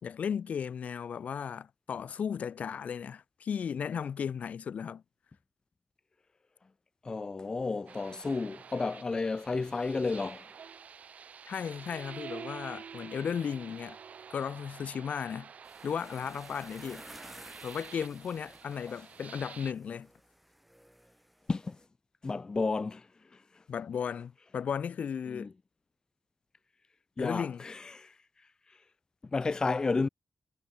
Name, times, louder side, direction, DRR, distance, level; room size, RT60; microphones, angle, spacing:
voice 1, 0.0-5.0 11.4-14.0 14.3-15.5 15.8-17.0 17.6-20.1 23.7-25.5 27.2-27.6, left 7 dB, 90° left, 1.4 m, -35 dB
voice 2, 7.0-10.5 21.5-21.8 22.2-23.6 25.3-25.5 27.2-28.2 28.7-28.8 29.3-30.1, left 3 dB, 30° left, 0.4 m, -32 dB
sound 1, 7.9-19.7, right 7 dB, 75° right, 2.6 m, -48 dB
sound 2, 15.6-21.9, equal, 5° right, 2.4 m, -54 dB
wide cardioid pair, 135°, 2 cm